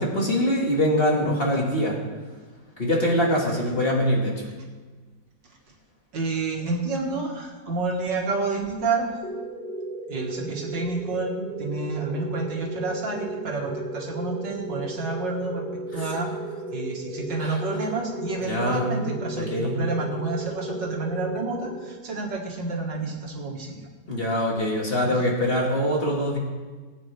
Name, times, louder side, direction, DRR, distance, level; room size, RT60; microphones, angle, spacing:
voice 1, 0.0-2.0 2.8-4.4 16.0-16.1 17.4-17.6 18.5-18.9 19.3-19.8 24.1-26.4, equal, 35° left, -2 dB, 2.0 m, -23 dB
voice 2, 6.1-9.1 10.1-16.3 16.7-23.9 25.0-25.3, right 3 dB, 90° right, 0 dB, 2.4 m, -29 dB
sound 1, 9.2-22.4, right 2 dB, 10° left, 1.1 m, -35 dB
20.0 x 8.5 x 3.4 m, 1.4 s
omnidirectional pair, 1.9 m